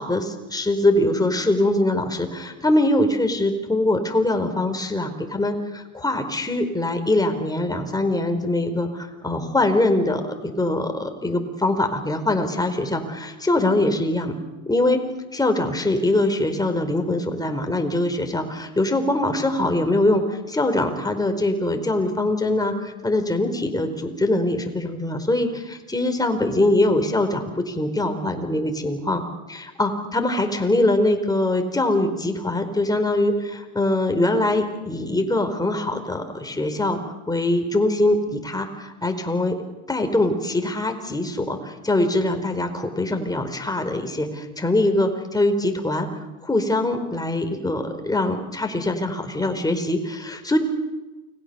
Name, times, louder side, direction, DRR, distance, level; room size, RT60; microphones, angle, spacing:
voice 1, 0.0-14.3 14.7-15.0 15.3-29.2 29.5-37.0 37.3-39.6 39.9-46.1 46.4-50.6, left 1 dB, 10° left, 5 dB, 4.7 m, -23 dB
29.5 x 21.0 x 7.1 m, 1.1 s
hypercardioid pair, 80°, 45 cm